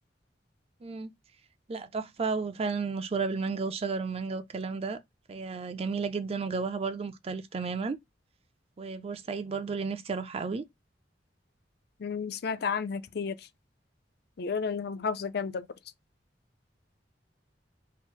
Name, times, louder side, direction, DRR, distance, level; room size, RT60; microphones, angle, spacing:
voice 1, 0.8-1.1 1.7-5.0 5.3-8.0 8.8-10.6, right 4 dB, 35° right, 0.4 m, -33 dB
voice 2, 12.0-13.5 14.4-15.7, left 5 dB, 60° left, 0.4 m, -32 dB
4.0 x 2.0 x 4.4 m
head